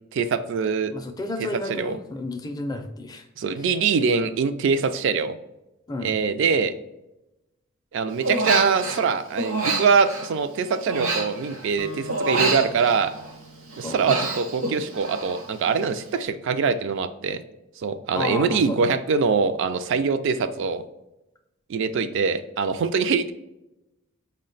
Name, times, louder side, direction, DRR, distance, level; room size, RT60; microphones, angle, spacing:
voice 1, 0.1-0.9 1.5-2.0 3.4-5.4 6.0-6.7 7.9-13.1 13.8-17.4 17.8-20.8 21.7-23.3, right 5 dB, 60° right, 10 dB, 0.3 m, -23 dB
voice 2, 0.9-3.3 5.9-6.1 13.8-14.2 18.1-18.8, left 2 dB, 20° left, 5 dB, 0.4 m, -32 dB
Human voice, 8.2-9.1 9.4-11.8 12.1-13.4 13.7-15.5 15.8-16.2, right 2 dB, 75° right, 0.7 m, -28 dB
Acoustic guitar, 11.8-14.5, equal, 70° left, 0.5 m, -43 dB
4.8 x 2.2 x 3.9 m, 0.91 s
head